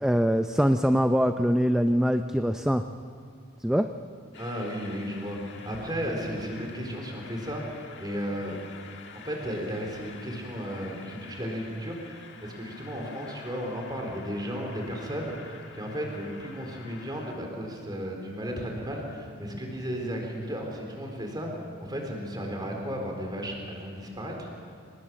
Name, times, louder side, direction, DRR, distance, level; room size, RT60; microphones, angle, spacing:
voice 1, 0.0-2.8 3.6-3.9, equal, 5° right, 7 dB, 0.5 m, -23 dB
Train, 4.3-17.4, left 5 dB, 55° left, 1.8 m, -48 dB
voice 2, 4.4-5.4 5.6-8.6 9.1-21.5 21.8-24.5, equal, 20° right, 1 dB, 4.2 m, -34 dB
25.0 x 20.0 x 7.7 m, 2.3 s
head